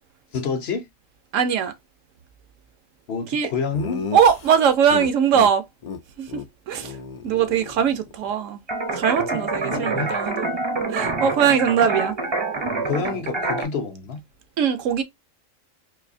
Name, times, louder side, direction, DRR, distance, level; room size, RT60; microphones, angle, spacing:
voice 1, 0.3-0.9 3.1-4.1 9.7-10.2 12.8-14.2, left 5 dB, 60° left, 0.8 m, -28 dB
voice 2, 1.3-1.7 3.3-3.5 4.1-5.6 6.2-6.4 6.7-6.9 7.2-8.6 8.9-10.5 10.9-12.2 14.6-15.0, right 8 dB, 75° right, 1.0 m, -20 dB
Laughter, 3.7-5.5 5.8-6.0 6.3-6.5 6.7-8.3, left 6 dB, 80° left, 0.3 m, -34 dB
sound 1, 8.7-13.7, right 3 dB, 30° right, 0.5 m, -26 dB
4.1 x 2.6 x 2.5 m
omnidirectional pair, 1.4 m